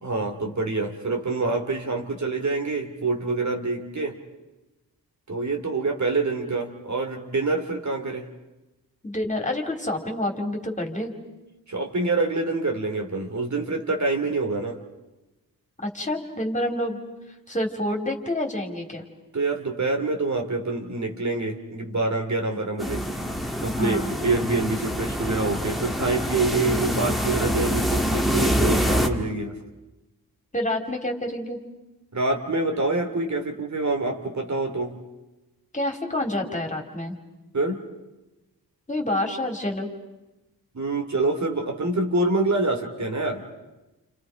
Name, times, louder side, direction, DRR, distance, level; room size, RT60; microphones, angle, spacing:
voice 1, 0.0-4.2 5.3-8.3 11.7-14.8 19.3-23.0 23.6-29.6 32.1-35.0 37.5-37.8 40.7-43.4, right 3 dB, 50° right, 3 dB, 2.9 m, -26 dB
voice 2, 9.0-11.1 15.8-17.0 17.5-19.0 23.7-24.1 30.5-31.6 35.7-37.2 38.9-39.9, left 1 dB, 20° left, 2 dB, 3.4 m, -28 dB
sound 1, 22.8-29.1, equal, ahead, 1.9 m, -25 dB
30.0 x 29.0 x 5.1 m, 1.0 s
wide cardioid pair, 90°, 36 cm